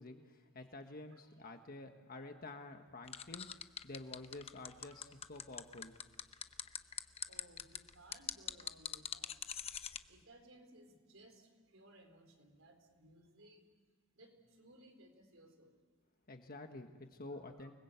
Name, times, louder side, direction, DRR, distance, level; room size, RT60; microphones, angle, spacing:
voice 1, 0.0-3.5 3.8-6.0 16.3-17.7, left 2 dB, 45° left, 5 dB, 1.4 m, -50 dB
voice 2, 1.1-1.6 4.8-5.1 5.5-5.6 6.6-6.7 7.2-9.4 10.1-13.7 14.1-15.8 17.3-17.7, right 1 dB, 80° right, 5 dB, 4.3 m, -62 dB
sound 1, 3.1-10.0, left 8 dB, 30° left, 0.8 m, -43 dB
29.5 x 20.5 x 8.2 m, 1.5 s
head